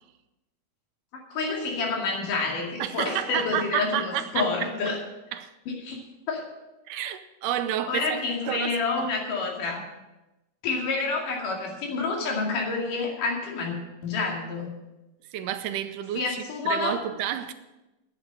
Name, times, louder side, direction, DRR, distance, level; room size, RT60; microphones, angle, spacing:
voice 1, 1.3-5.0 5.7-6.0 6.3-6.4 7.9-9.8 10.6-13.8 14.0-14.7 16.2-17.0, left 4 dB, 75° left, 4.0 m, -28 dB
voice 2, 2.8-4.7 5.3-5.5 6.9-9.1 15.3-17.5, right 11 dB, 85° right, 2.3 m, -30 dB
11.0 x 8.9 x 7.5 m
omnidirectional pair, 3.8 m